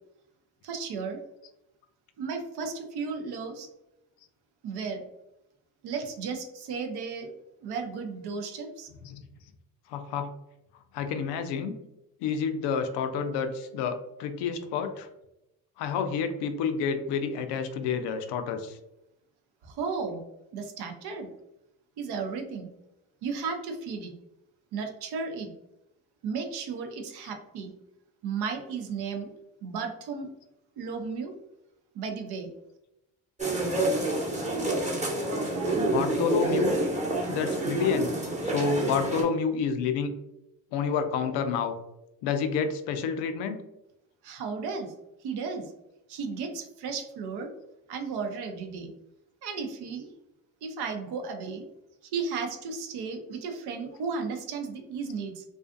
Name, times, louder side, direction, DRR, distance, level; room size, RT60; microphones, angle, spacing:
voice 1, 0.6-1.2 2.2-3.7 4.6-5.0 5.8-7.3 7.6-8.9 19.6-20.2 20.5-21.3 22.0-22.7 23.2-24.1 24.7-25.5 26.2-27.7 28.2-29.3 29.6-30.3 30.8-31.3 31.9-32.5 44.2-44.9 45.2-45.7 46.1-47.5 47.9-48.9 49.4-50.1 50.6-51.6 52.1-55.4, right 5 dB, 65° right, 4 dB, 0.6 m, -34 dB
voice 2, 9.9-10.3 10.9-11.8 12.2-15.1 15.8-18.8 35.9-36.8 37.3-38.1 38.4-40.1 40.7-41.8 42.2-43.6, left 6 dB, 70° left, 8 dB, 0.5 m, -29 dB
sound 1, 33.4-39.2, right 2 dB, 15° right, 0.9 m, -28 dB
2.4 x 2.4 x 2.4 m, 0.88 s
hypercardioid pair, 55°, 43 cm